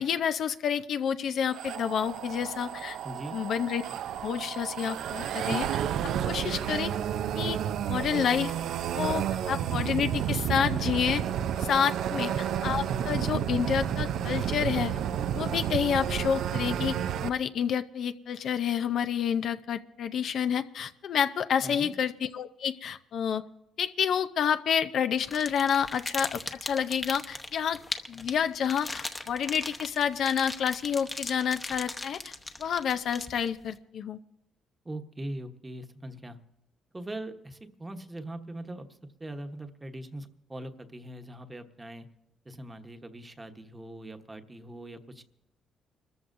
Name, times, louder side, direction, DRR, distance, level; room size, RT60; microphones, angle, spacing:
voice 1, 0.0-3.0 3.3-3.8 4.2-6.9 7.3-7.6 7.9-8.5 8.9-11.2 11.6-15.0 15.3-16.9 17.2-23.4 23.8-27.8 28.1-32.3 32.6-34.2, left 8 dB, 65° left, 10 dB, 0.6 m, -29 dB
sound 1, 1.5-17.3, right 9 dB, 80° right, 0.5 m, -31 dB
voice 2, 3.0-3.4 12.1-12.4 21.6-21.9 34.8-36.4 36.9-42.1 42.4-45.2, right 1 dB, 20° right, 7 dB, 1.1 m, -41 dB
sound 2, 25.2-33.7, left 2 dB, 20° left, 0.9 m, -38 dB
29.0 x 14.0 x 2.7 m, 0.92 s
cardioid pair, 90°, 0 cm